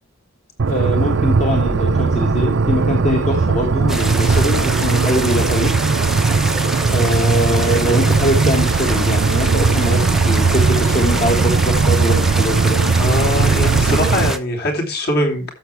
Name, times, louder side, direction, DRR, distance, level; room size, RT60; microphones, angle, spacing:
sound 1, 0.6-14.3, right 4 dB, 60° right, 0.6 m, -17 dB
voice 1, 0.7-5.7 6.9-12.8, left 1 dB, 35° left, 1 dB, 1.9 m, -22 dB
sound 2, 3.9-14.4, right 1 dB, ahead, 0.9 m, -26 dB
voice 2, 13.0-15.4, left 1 dB, 50° left, 1 dB, 3.1 m, -21 dB
12.5 x 7.0 x 3.3 m, 0.34 s
head